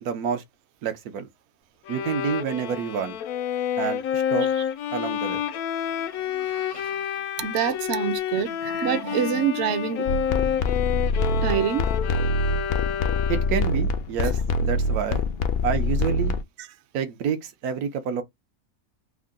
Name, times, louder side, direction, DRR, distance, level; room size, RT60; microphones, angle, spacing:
voice 1, 0.0-0.4 0.8-1.3 1.9-3.2 3.8-4.5 4.9-5.4 13.3-15.2 15.6-16.3 16.9-18.2, right 7 dB, 85° right, 1.3 m, -28 dB
Bowed string instrument, 1.9-13.7, left 9 dB, 85° left, 1.1 m, -29 dB
voice 2, 6.1-10.1 11.4-11.9, right 9 dB, 60° right, 0.7 m, -27 dB
sound 1, 10.1-16.4, left 2 dB, 65° left, 0.6 m, -25 dB
3.7 x 2.2 x 3.6 m
omnidirectional pair, 1.5 m